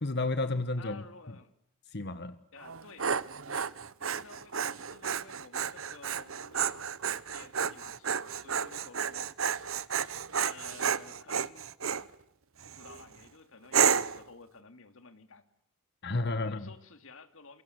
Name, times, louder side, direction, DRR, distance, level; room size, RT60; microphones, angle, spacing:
voice 1, 0.0-1.0 1.9-2.4 16.0-16.7, left 2 dB, 50° left, 12 dB, 1.2 m, -31 dB
voice 2, 0.8-1.5 2.5-3.1 3.5-3.7 4.0-9.3 10.4-11.7 12.6-15.4 16.4-17.6, left 4 dB, 65° left, 10 dB, 2.6 m, -53 dB
Dog, 2.6-12.1 12.6-13.0 13.7-14.2, right 7 dB, 70° right, 1.0 m, -31 dB
28.5 x 24.5 x 8.1 m, 0.72 s
head